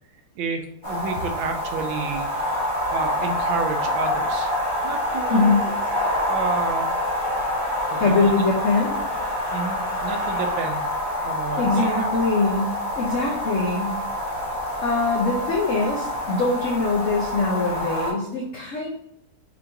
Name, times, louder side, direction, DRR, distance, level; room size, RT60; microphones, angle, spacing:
voice 1, 0.4-2.6 2.9-4.5 4.8-5.7 6.3-6.9 7.9-8.3 9.5-10.9 11.2-12.1, right 5 dB, 75° right, 5 dB, 1.3 m, -30 dB
sound 1, 0.8-18.1, left 1 dB, 25° left, 1.6 m, -26 dB
voice 2, 5.3-5.7 8.0-9.0 11.6-14.0 14.8-18.9, left 3 dB, 85° left, -2 dB, 0.6 m, -23 dB
4.6 x 3.4 x 2.6 m, 0.78 s
omnidirectional pair, 2.2 m